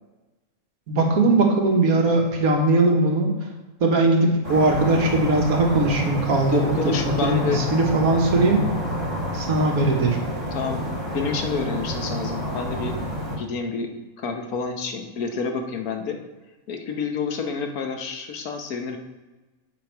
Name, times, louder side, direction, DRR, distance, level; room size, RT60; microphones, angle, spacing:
voice 1, 0.9-3.3 3.8-7.0 7.2-8.7 9.3-10.2, right 2 dB, 75° right, 1 dB, 1.7 m, -20 dB
sound 1, 4.4-13.4, equal, 50° right, 2.4 m, -29 dB
voice 2, 6.5-7.6 10.5-12.9 13.4-13.9 14.2-16.2 16.7-19.0, left 5 dB, 80° left, 4 dB, 1.4 m, -29 dB
7.9 x 5.2 x 4.5 m, 1.2 s
omnidirectional pair, 1.5 m